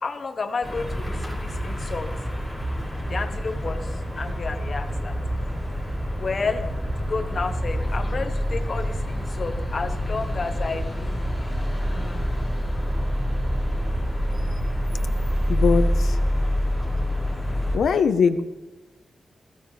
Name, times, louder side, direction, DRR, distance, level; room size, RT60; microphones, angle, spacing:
voice 1, 0.0-2.1 3.1-5.2 6.1-6.7 7.0-11.4 11.8-12.3, left 4 dB, 40° left, 7 dB, 1.4 m, -31 dB
sound 1, 0.6-17.8, equal, 5° right, 5.9 m, -26 dB
voice 2, 15.5-16.2 17.7-18.4, left 6 dB, 85° left, 9 dB, 1.1 m, -21 dB
20.5 x 16.0 x 3.5 m, 1.1 s
wide cardioid pair, 160°, 0 cm